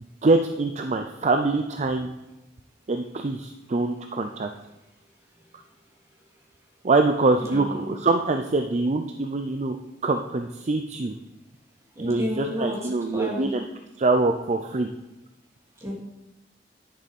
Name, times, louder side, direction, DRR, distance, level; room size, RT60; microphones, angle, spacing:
voice 1, 0.2-2.1 2.9-4.5 6.8-9.8 10.0-11.1 12.0-13.6 14.0-14.9, right 3 dB, 40° right, 6 dB, 0.5 m, -24 dB
voice 2, 7.4-7.9 12.0-13.5 15.8-15.9, left 1 dB, 15° right, -4 dB, 2.8 m, -32 dB
10.0 x 6.9 x 5.3 m, 0.99 s
head